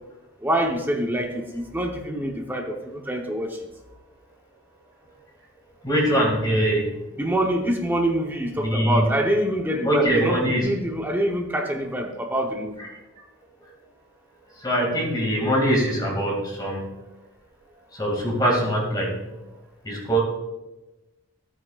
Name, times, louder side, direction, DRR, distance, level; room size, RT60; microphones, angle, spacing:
voice 1, 0.4-3.5 7.2-12.7, right 1 dB, 10° right, 2 dB, 0.9 m, -25 dB
voice 2, 5.8-6.9 8.6-9.1 9.8-10.7 12.8-12.9 14.6-16.9 18.0-19.2 19.8-20.2, right 1 dB, 20° left, -1 dB, 2.3 m, -22 dB
13.5 x 8.8 x 2.4 m, 1.0 s
head